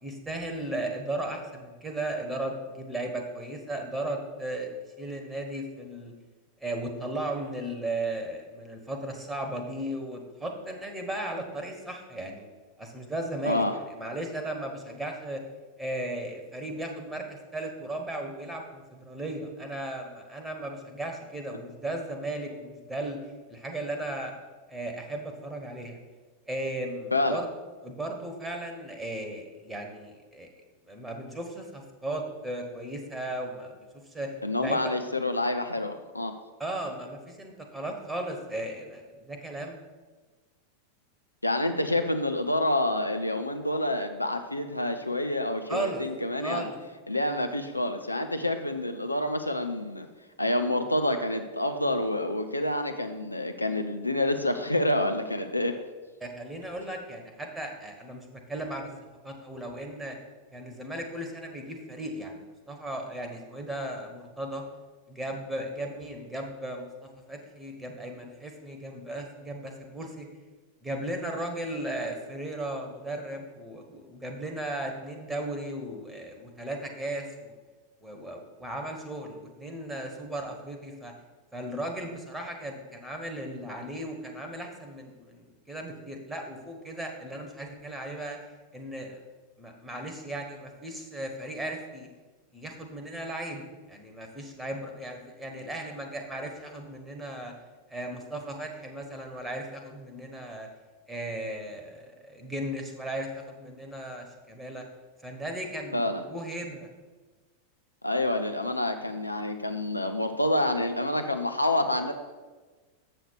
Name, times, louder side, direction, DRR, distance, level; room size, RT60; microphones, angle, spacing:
voice 1, 0.0-4.7 5.0-6.1 6.6-12.5 12.8-15.4 15.8-23.2 23.5-24.3 24.7-26.0 26.5-27.5 27.8-30.5 30.9-33.7 34.1-34.3 34.6-34.9 36.6-39.8 45.7-46.0 46.4-46.8 56.2-58.9 59.2-60.2 60.5-64.6 65.1-70.3 70.8-77.5 78.0-81.1 81.5-88.4 88.7-89.2 89.6-92.1 92.5-97.5 97.9-100.7 101.1-104.8 105.2-106.9, right 1 dB, 5° right, 3 dB, 1.4 m, -36 dB
voice 2, 27.1-27.4 34.4-36.3 41.4-46.7 47.1-50.1 50.4-55.8 105.9-106.2 108.0-112.1, left 1 dB, 85° left, 6 dB, 0.5 m, -28 dB
7.7 x 6.4 x 4.6 m, 1.3 s
figure-of-eight pair, 90°, 0 cm